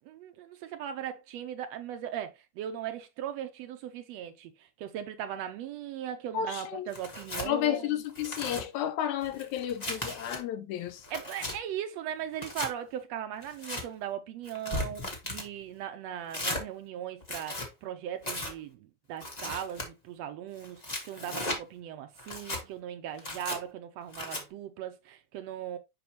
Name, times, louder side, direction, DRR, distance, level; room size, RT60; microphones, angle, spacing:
voice 1, 0.1-7.9 11.1-25.8, right 10 dB, 75° right, 1.7 m, -38 dB
voice 2, 6.3-6.9 7.4-11.1, left 10 dB, 85° left, 2.1 m, -32 dB
Tearing, 6.9-7.5 8.0-8.6 9.2-10.4 10.9-11.6 12.3-12.7 13.4-13.8 14.4-15.5 16.3-16.6 17.2-17.7 18.2-18.5 19.2-19.9 20.6-21.6 22.2-22.6 23.2-23.6 24.1-24.4, left 2 dB, 35° left, 0.6 m, -36 dB
6.9 x 5.2 x 2.9 m
omnidirectional pair, 3.4 m